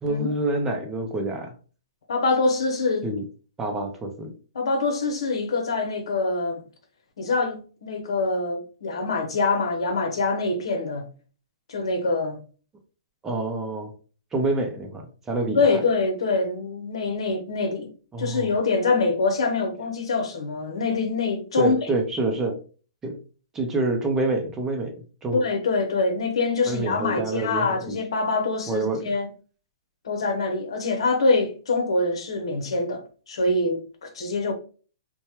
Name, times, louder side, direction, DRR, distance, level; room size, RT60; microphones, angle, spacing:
voice 1, 0.0-1.5 3.0-3.2 3.6-4.3 13.2-13.9 14.3-15.7 18.1-18.5 21.5-22.6 23.0-23.2 23.5-25.4 26.7-28.0 28.7-29.1, right 2 dB, 15° right, 0.6 m, -27 dB
voice 2, 2.1-3.1 4.5-6.6 7.2-11.1 11.7-12.4 15.5-17.9 18.2-21.8 25.3-29.3 30.0-34.5, left 3 dB, 75° left, 0.8 m, -24 dB
2.7 x 2.2 x 3.0 m
hypercardioid pair, 145°, 3 cm